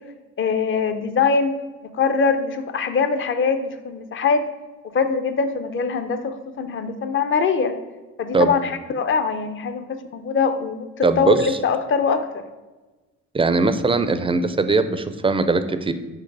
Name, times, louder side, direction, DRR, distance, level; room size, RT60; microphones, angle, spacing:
voice 1, 0.4-1.5 1.9-4.5 4.9-7.7 8.2-12.4, left 5 dB, 40° left, 9 dB, 0.6 m, -22 dB
voice 2, 11.0-11.4 13.3-15.9, right 3 dB, 20° right, 10 dB, 0.4 m, -20 dB
4.8 x 4.7 x 4.7 m, 1.2 s
cardioid pair, 90°, 30 cm